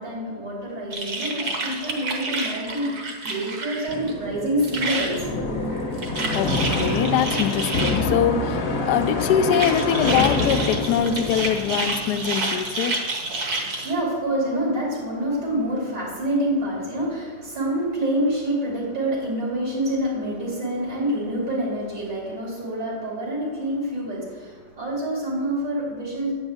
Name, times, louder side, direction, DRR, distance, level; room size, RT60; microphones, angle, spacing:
voice 1, 0.0-3.0 3.2-5.2 13.3-26.3, right 1 dB, 80° right, -5 dB, 3.2 m, -27 dB
sound 1, 0.9-4.1 4.4-5.2 5.7-8.0 8.9-13.9, right 2 dB, 60° right, 1.8 m, -29 dB
sound 2, 3.9-12.7, left 3 dB, 40° left, 1.0 m, -26 dB
voice 2, 6.3-13.0, left 8 dB, 75° left, 9 dB, 1.2 m, -23 dB
8.9 x 6.1 x 7.2 m, 1.5 s
omnidirectional pair, 1.8 m